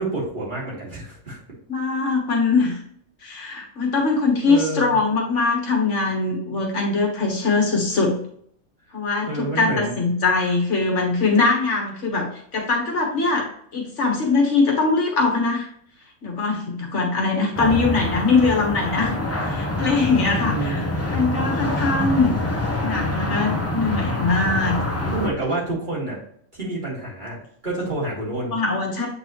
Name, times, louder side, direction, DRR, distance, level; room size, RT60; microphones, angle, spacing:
voice 1, 0.0-1.4 4.0-4.1 4.4-5.0 9.2-10.0 20.3-20.9 25.1-26.2 26.5-28.6, right 2 dB, 35° right, -6 dB, 2.5 m, -28 dB
voice 2, 1.7-2.8 3.2-8.2 8.9-13.5 13.7-15.7 16.2-19.1 19.4-22.4 22.8-24.8 28.5-29.1, left 3 dB, 60° left, 0 dB, 1.6 m, -22 dB
sound 1, 17.5-25.3, left 1 dB, 15° left, 0.6 m, -25 dB
7.9 x 4.0 x 3.0 m, 0.64 s
omnidirectional pair, 1.4 m